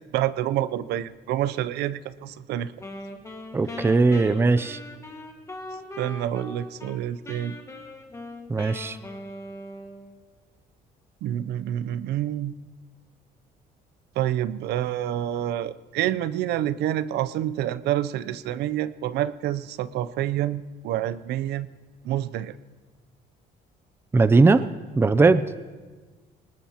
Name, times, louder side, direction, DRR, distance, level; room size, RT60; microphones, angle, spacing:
voice 1, 0.1-2.7 6.0-7.6 11.2-12.5 14.2-21.7 22.0-22.6, right 12 dB, 80° right, 16 dB, 0.5 m, -28 dB
Wind instrument woodwind instrument, 2.8-7.0 7.2-10.2, left 2 dB, 15° left, 1.7 m, -40 dB
voice 2, 3.5-4.8 8.5-9.0 24.1-24.6 25.0-25.5, right 3 dB, 15° right, 14 dB, 0.4 m, -19 dB
20.0 x 19.0 x 2.9 m, 1.3 s
cardioid pair, 110°, 17 cm